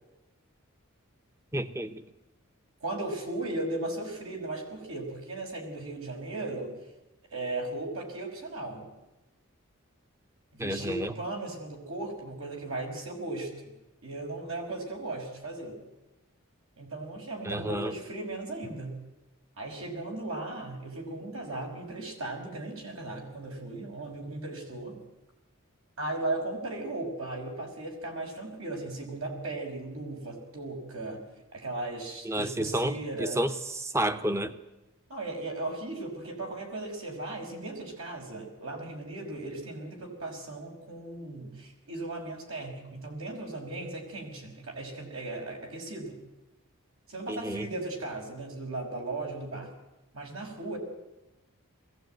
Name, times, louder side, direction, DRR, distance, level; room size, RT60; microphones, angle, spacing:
voice 1, 1.5-2.0 10.6-11.1 17.4-17.9 32.3-32.9 33.2-34.5 47.3-47.6, right 1 dB, 15° right, 10 dB, 0.9 m, -30 dB
voice 2, 2.8-6.7 7.3-8.9 10.5-13.5 14.0-15.8 16.8-19.0 19.6-25.0 26.0-31.2 31.5-33.5 35.1-46.1 47.1-49.7 50.1-50.8, right 2 dB, 75° right, 1 dB, 5.8 m, -37 dB
21.5 x 16.5 x 9.2 m, 1.0 s
head